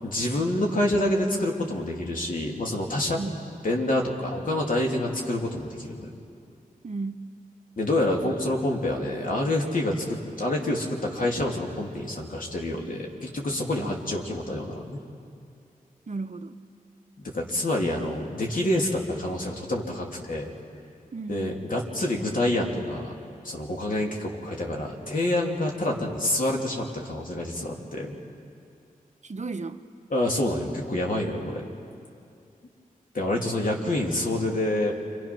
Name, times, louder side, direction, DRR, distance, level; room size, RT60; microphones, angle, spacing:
voice 1, 0.0-3.2 3.6-6.1 7.8-15.0 17.2-20.5 21.3-23.1 23.4-28.1 30.1-31.6 33.1-34.9, left 1 dB, 65° left, -1 dB, 3.3 m, -27 dB
voice 2, 6.8-7.2 13.8-13.9 16.1-16.6 21.1-21.5 29.2-29.8, right 3 dB, 55° right, 8 dB, 1.0 m, -34 dB
29.5 x 25.0 x 6.2 m, 2.4 s
wide cardioid pair, 70°, 15 cm